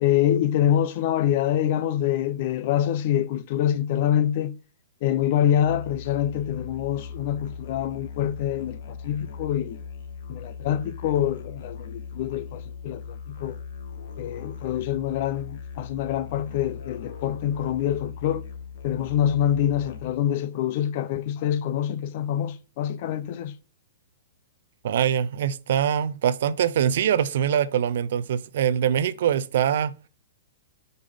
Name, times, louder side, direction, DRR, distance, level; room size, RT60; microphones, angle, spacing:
voice 1, 0.0-4.6 5.0-9.8 10.3-13.6 14.2-18.4 18.8-23.6, left 10 dB, 35° left, 0.4 m, -25 dB
Musical instrument, 5.5-20.3, left 6 dB, 50° left, 1.0 m, -39 dB
voice 2, 24.8-29.9, right 9 dB, 50° right, 0.4 m, -23 dB
5.4 x 5.2 x 3.4 m
hypercardioid pair, 175°, 0 cm